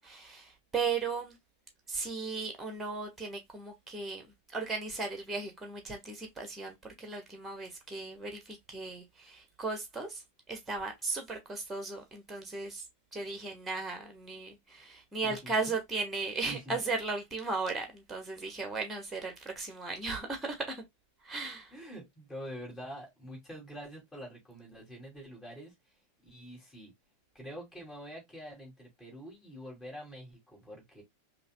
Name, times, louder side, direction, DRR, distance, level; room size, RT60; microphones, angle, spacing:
voice 1, 0.0-1.4 1.9-12.9 13.1-20.8 21.2-21.7, right 4 dB, 10° right, 1.3 m, -36 dB
voice 2, 16.5-16.8 21.7-25.7 26.2-26.9 27.3-31.0, equal, 15° left, 2.7 m, -46 dB
5.4 x 2.5 x 2.2 m
figure-of-eight pair, 90°, 0 cm